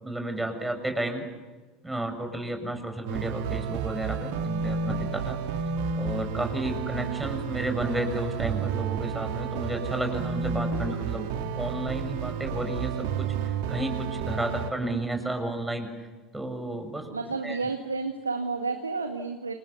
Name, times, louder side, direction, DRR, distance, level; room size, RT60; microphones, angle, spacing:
voice 1, 0.0-1.3 1.8-5.4 5.9-16.1 16.3-17.1 17.4-17.7, right 1 dB, 5° right, 6 dB, 6.9 m, -32 dB
sound 1, 3.1-14.7, right 6 dB, 60° right, 2.7 m, -31 dB
voice 2, 17.1-19.5, right 4 dB, 85° right, 5 dB, 2.0 m, -31 dB
30.0 x 28.0 x 7.0 m, 1.2 s
figure-of-eight pair, 70°, 0 cm